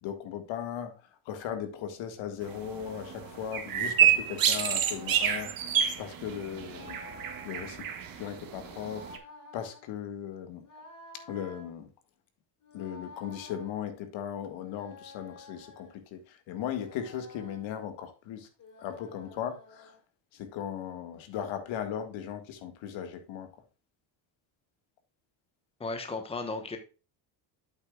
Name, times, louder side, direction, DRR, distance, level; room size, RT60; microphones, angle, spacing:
voice 1, 0.0-5.5 6.0-7.0 7.4-7.9 8.1-9.1 9.5-10.6 11.3-11.9 12.7-18.5 18.8-19.9 20.3-23.5, left 9 dB, 70° left, 1.9 m, -37 dB
sound 1, 2.4-9.2, right 9 dB, 45° right, 1.7 m, -29 dB
sound 2, 2.6-3.7 4.6-5.6 6.6-7.8 8.6-9.8 10.6-11.7 12.6-13.7 14.6-16.0 16.6-17.7 18.6-20.0, left 2 dB, 40° left, 3.7 m, -51 dB
voice 2, 25.8-26.8, left 3 dB, 10° left, 1.2 m, -35 dB
9.1 x 8.2 x 2.4 m
cardioid pair, 145°, 48 cm